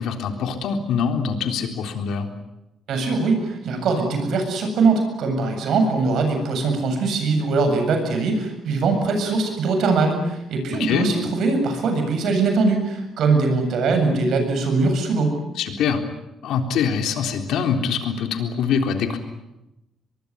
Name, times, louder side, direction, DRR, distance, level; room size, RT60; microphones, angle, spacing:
voice 1, 0.0-2.3 10.8-11.1 15.6-16.0 16.4-19.2, left 6 dB, 80° left, 5 dB, 3.8 m, -24 dB
voice 2, 2.9-15.4, right 3 dB, 70° right, 6 dB, 7.8 m, -21 dB
24.0 x 22.5 x 9.7 m, 0.91 s
cardioid pair, 90°, 0 cm